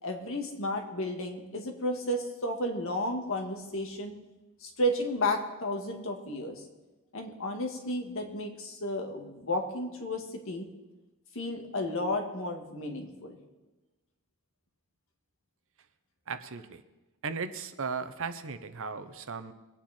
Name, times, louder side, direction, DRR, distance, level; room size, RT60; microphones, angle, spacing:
voice 1, 0.0-4.2 4.6-6.6 7.1-10.7 11.3-13.4, left 1 dB, 65° left, 3 dB, 2.1 m, -32 dB
voice 2, 16.3-16.8 17.2-19.5, right 5 dB, 60° right, 11 dB, 0.9 m, -36 dB
22.5 x 9.0 x 4.4 m, 1.1 s
head